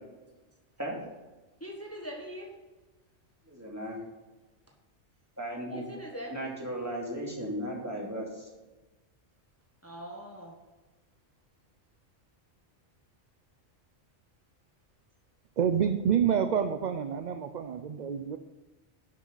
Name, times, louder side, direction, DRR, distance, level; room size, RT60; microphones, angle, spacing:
voice 1, 1.6-2.5 5.7-6.3 9.8-10.5, equal, 10° left, 0 dB, 1.3 m, -42 dB
voice 2, 3.5-4.0 5.4-5.9 6.3-8.5, right 1 dB, 15° right, -3 dB, 2.5 m, -36 dB
voice 3, 15.6-18.4, right 8 dB, 50° right, 9 dB, 0.5 m, -28 dB
11.0 x 7.6 x 4.0 m, 1.2 s
omnidirectional pair, 1.2 m